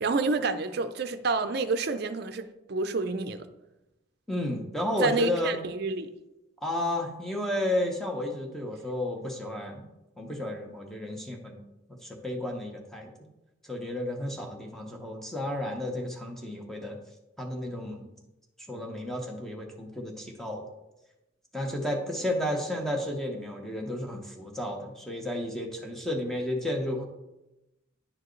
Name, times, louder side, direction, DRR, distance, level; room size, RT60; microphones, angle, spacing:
voice 1, 0.0-3.5 5.0-6.1, right 3 dB, 55° right, 9 dB, 0.5 m, -28 dB
voice 2, 4.3-5.6 6.6-9.8 10.2-11.6 12.0-13.1 13.6-17.0 17.4-18.1 18.7-20.7 21.5-27.1, left 1 dB, ahead, 1 dB, 0.8 m, -32 dB
9.9 x 4.6 x 3.2 m, 0.96 s
head